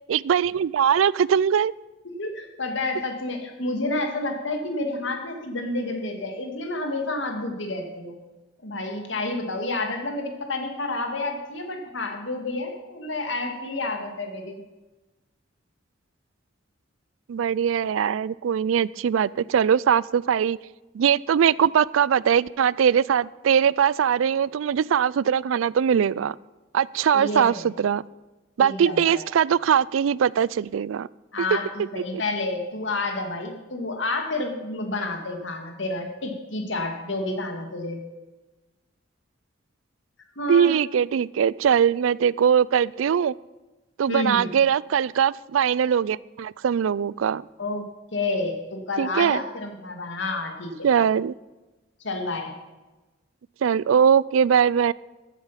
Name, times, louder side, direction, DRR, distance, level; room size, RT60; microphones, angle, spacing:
voice 1, 0.1-1.7 17.3-20.6 20.9-26.4 26.7-28.0 28.6-31.1 32.0-32.1 40.5-43.3 44.0-47.4 49.0-49.4 50.8-51.4 53.6-54.9, right 8 dB, 90° right, 22 dB, 0.3 m, -21 dB
voice 2, 2.2-8.2 8.6-14.6 27.1-27.6 28.6-29.2 31.3-38.0 40.4-40.7 44.1-44.5 47.6-47.8 48.1-50.9 52.0-52.5, left 2 dB, 75° left, 4 dB, 2.2 m, -29 dB
14.5 x 8.5 x 5.7 m, 1.1 s
head